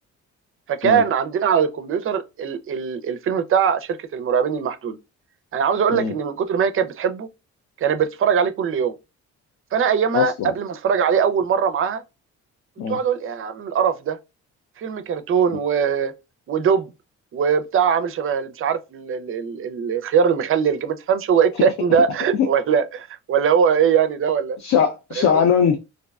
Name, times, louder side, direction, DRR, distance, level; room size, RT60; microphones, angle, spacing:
voice 1, 0.7-5.0 5.5-7.3 7.8-8.9 9.7-12.0 12.9-14.2 14.8-16.1 16.5-16.9 17.3-24.6 25.2-25.4, right 7 dB, 45° right, 0.4 m, -21 dB
voice 2, 10.1-10.5 12.8-13.0 22.4-22.5 24.6-25.8, left 7 dB, 65° left, 0.5 m, -20 dB
2.6 x 2.2 x 2.3 m
cardioid pair, 90°, 30 cm